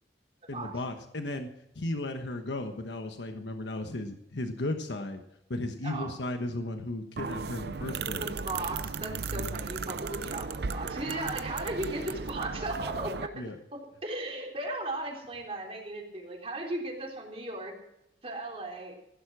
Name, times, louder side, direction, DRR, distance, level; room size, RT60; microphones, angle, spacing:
voice 1, 0.5-1.5 1.7-5.2 5.5-8.3 13.3-13.6, left 2 dB, 90° left, 6 dB, 1.2 m, -35 dB
sound 1, 7.2-13.3, right 5 dB, 65° right, 0.6 m, -36 dB
voice 2, 8.1-13.4 13.7-17.7 18.2-19.0, right 2 dB, 35° right, 0 dB, 3.7 m, -36 dB
15.5 x 11.5 x 6.1 m, 0.83 s
head